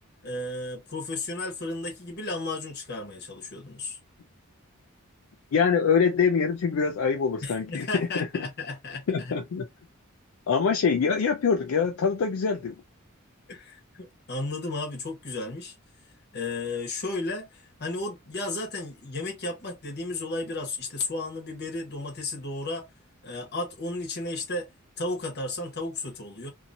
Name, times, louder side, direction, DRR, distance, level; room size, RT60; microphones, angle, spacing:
voice 1, 0.2-4.0 7.4-9.3 13.5-15.7 16.3-22.8 23.2-24.7 25.0-26.5, left 2 dB, 50° left, 1.1 m, -34 dB
voice 2, 5.5-8.3 9.1-9.7 10.5-12.7, left 6 dB, 75° left, 0.4 m, -24 dB
2.8 x 2.6 x 2.6 m
head